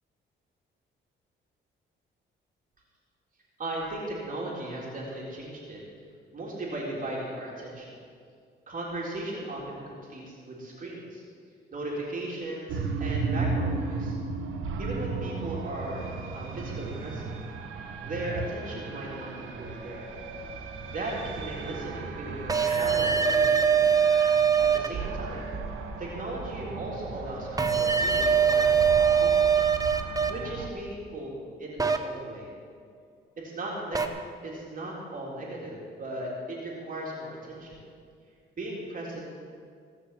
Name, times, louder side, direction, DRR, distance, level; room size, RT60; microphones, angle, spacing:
voice 1, 3.6-5.8 6.3-7.9 8.7-11.2 11.7-14.2 14.8-16.1 16.3-17.4 17.7-20.1 20.9-23.8 24.6-25.5 26.0-29.7 30.3-32.5 33.4-34.0 34.4-37.8 38.6-39.3, right 1 dB, 45° right, -4 dB, 3.6 m, -37 dB
sound 1, 12.7-30.7, right 4 dB, 85° right, 1.3 m, -35 dB
sound 2, 22.5-24.9 27.6-30.3 31.8-32.0 33.9-34.1, right 6 dB, 20° right, 0.9 m, -22 dB
17.5 x 6.7 x 7.6 m, 2.2 s
cardioid pair, 90°, 20 cm